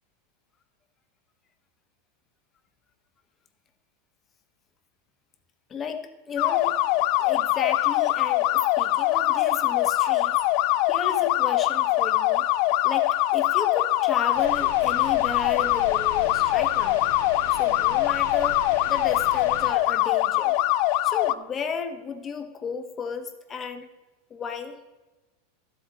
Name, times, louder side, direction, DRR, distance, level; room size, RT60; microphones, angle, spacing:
voice 1, 5.7-6.8 7.2-10.4 10.9-12.5 12.8-17.0 17.5-20.6 21.0-23.9 24.3-24.8, left 6 dB, 30° left, 8 dB, 1.1 m, -34 dB
sound 1, 6.4-21.3, left 15 dB, 55° left, 0.4 m, -23 dB
sound 2, 14.3-19.7, left 3 dB, 80° left, 3.2 m, -39 dB
13.0 x 7.9 x 4.0 m, 1.1 s
hypercardioid pair, 115°, 0 cm